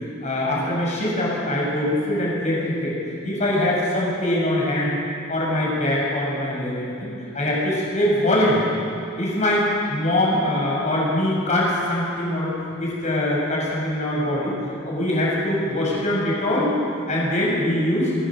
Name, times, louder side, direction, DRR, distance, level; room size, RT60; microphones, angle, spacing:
voice 1, 0.2-2.9 3.2-5.0 5.3-7.1 7.3-8.6 9.2-12.5 12.8-14.5 14.8-16.7 17.1-18.2, left 1 dB, 35° left, -4 dB, 7.9 m, -22 dB
23.0 x 18.5 x 8.0 m, 2.6 s
head